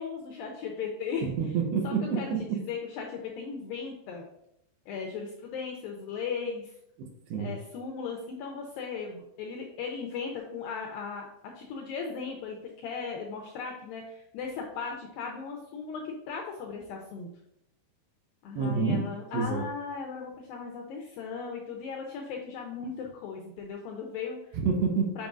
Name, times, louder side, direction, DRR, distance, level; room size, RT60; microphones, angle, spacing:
voice 1, 0.0-1.3 1.8-4.3 4.9-6.8 7.4-11.3 11.6-17.3 18.4-24.5 25.2-25.3, left 5 dB, 85° left, 1 dB, 2.1 m, -37 dB
voice 2, 1.2-2.6 7.0-7.5 18.6-19.0 19.3-19.6 24.5-25.2, right 5 dB, 80° right, 2 dB, 2.5 m, -28 dB
7.2 x 5.3 x 2.5 m, 0.79 s
omnidirectional pair, 4.8 m